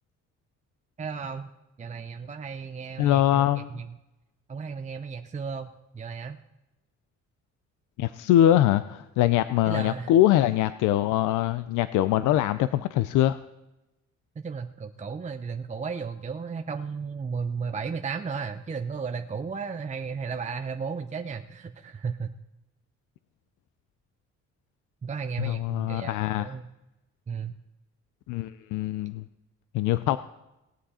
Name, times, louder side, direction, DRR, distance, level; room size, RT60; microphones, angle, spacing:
voice 1, 1.0-1.5 1.8-3.9 4.5-6.4 9.6-10.1 12.2-12.3 14.4-22.3 25.0-26.6 27.3-27.5, right 5 dB, 25° right, 7 dB, 0.6 m, -34 dB
voice 2, 3.0-3.7 8.0-13.4 25.4-26.5 28.3-29.2 29.7-30.2, left 13 dB, 90° left, 13 dB, 0.5 m, -23 dB
18.5 x 7.8 x 4.3 m, 0.96 s
cardioid pair, 90°, 30 cm